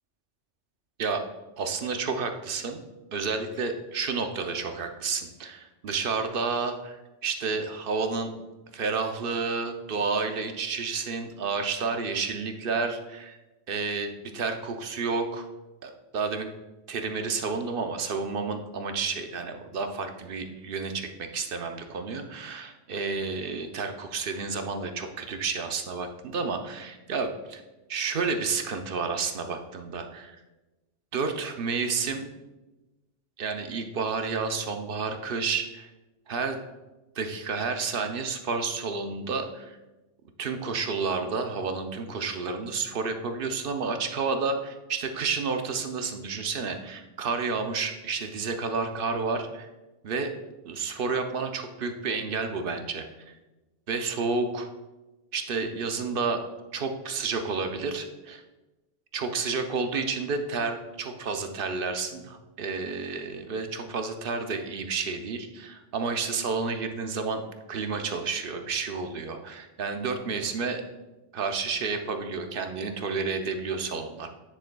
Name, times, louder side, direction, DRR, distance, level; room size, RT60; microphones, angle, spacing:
voice 1, 1.6-2.8 3.1-8.3 8.7-13.4 13.7-15.5 15.8-16.5 16.9-27.6 27.9-30.4 31.1-32.3 33.4-35.9 36.3-36.6 37.2-39.8 40.4-49.7 50.0-50.3 50.7-53.3 53.9-54.7 55.3-56.4 56.7-58.4 59.1-67.4 67.7-70.8 71.3-74.3, right 4 dB, 55° right, 6 dB, 0.8 m, -30 dB
9.8 x 6.5 x 2.2 m, 1.1 s
omnidirectional pair, 1.2 m